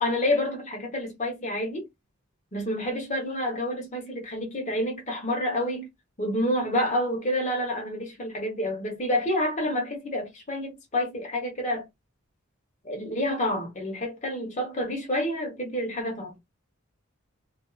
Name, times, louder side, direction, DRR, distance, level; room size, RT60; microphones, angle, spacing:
voice 1, 0.0-1.9 2.5-5.9 6.2-11.8 12.8-16.3, left 1 dB, 35° left, 0.9 m, -28 dB
2.5 x 2.4 x 2.2 m
head